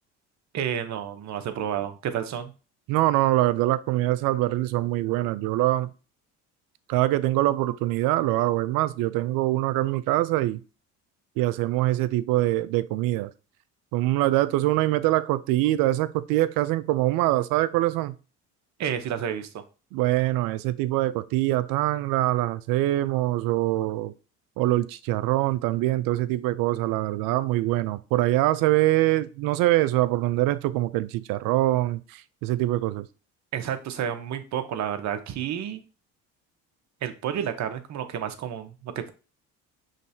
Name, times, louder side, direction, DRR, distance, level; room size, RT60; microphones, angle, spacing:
voice 1, 0.5-2.5 18.8-19.6 33.5-35.8 37.0-39.1, right 9 dB, 50° right, 0.8 m, -30 dB
voice 2, 2.9-5.9 6.9-10.6 11.4-13.3 13.9-18.2 19.9-24.1 24.6-33.1, right 16 dB, 70° right, 0.5 m, -24 dB
5.3 x 3.2 x 2.7 m
supercardioid pair, 80°, 36 cm